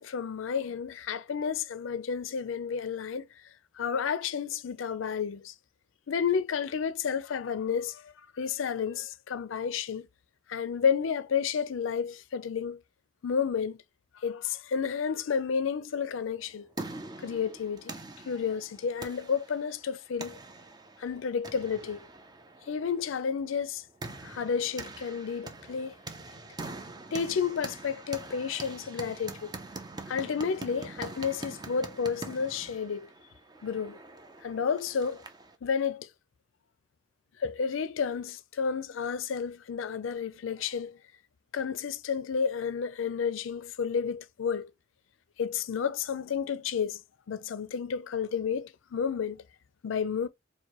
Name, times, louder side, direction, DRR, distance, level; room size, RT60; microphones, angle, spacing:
voice 1, 0.0-3.5 3.8-5.5 6.1-10.1 10.5-12.8 13.2-13.8 14.2-16.7 17.2-18.0 18.3-20.4 21.0-22.1 22.7-23.8 24.2-25.9 27.1-29.5 30.1-33.1 33.6-34.0 34.4-35.2 35.6-36.1 37.4-41.0 41.5-44.7 45.4-47.0 47.3-49.4 49.8-50.3, left 6 dB, 90° left, 0.4 m, -31 dB
sound 1, 16.3-35.6, right 3 dB, 20° right, 0.5 m, -44 dB
4.5 x 2.2 x 2.9 m
head